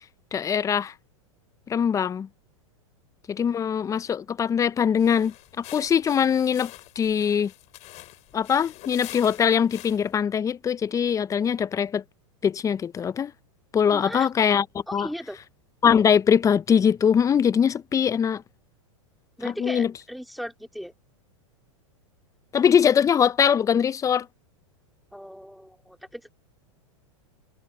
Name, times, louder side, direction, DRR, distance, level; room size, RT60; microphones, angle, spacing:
voice 1, 0.3-0.9 1.7-2.3 3.3-6.7 7.0-7.5 8.3-12.0 12.4-13.3 13.7-14.6 14.9-15.1 15.8-18.4 19.6-19.9 22.5-24.3, left 7 dB, 20° left, 0.8 m, -22 dB
sound 1, 5.0-10.2, left 18 dB, 45° left, 7.7 m, -45 dB
voice 2, 13.9-14.3 14.9-15.4 19.4-20.9 25.1-26.2, equal, ahead, 4.0 m, -37 dB
hypercardioid pair, 110°, 16 cm